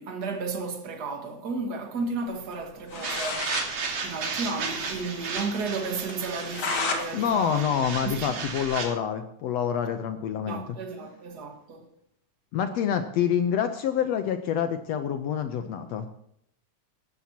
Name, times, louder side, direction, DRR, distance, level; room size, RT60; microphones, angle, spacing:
voice 1, 0.0-7.7 8.0-8.4 10.4-11.9, right 4 dB, 40° right, 1.8 m, -33 dB
sound 1, 2.6-2.7 2.9-3.7 4.0-4.1 4.4-4.5 4.9-5.0 5.4-5.5 6.1-7.0 7.4-8.8, left 3 dB, 50° left, 2.5 m, -32 dB
sound 2, 3.0-8.9, right 5 dB, 70° right, 3.2 m, -34 dB
voice 2, 7.1-10.6 12.5-16.1, left 8 dB, 70° left, 1.8 m, -27 dB
18.0 x 13.0 x 2.9 m
omnidirectional pair, 3.4 m